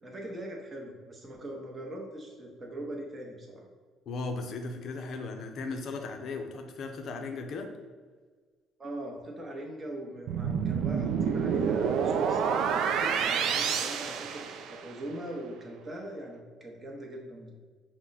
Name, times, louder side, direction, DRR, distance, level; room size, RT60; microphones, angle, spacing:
voice 1, 0.0-3.6 8.8-17.5, right 1 dB, 20° right, -1 dB, 0.8 m, -41 dB
voice 2, 4.1-7.7, left 3 dB, 50° left, 5 dB, 0.5 m, -37 dB
sound 1, 10.3-15.0, right 7 dB, 70° right, 0.3 m, -28 dB
5.9 x 2.1 x 3.9 m, 1.5 s
cardioid pair, 160°, 0 cm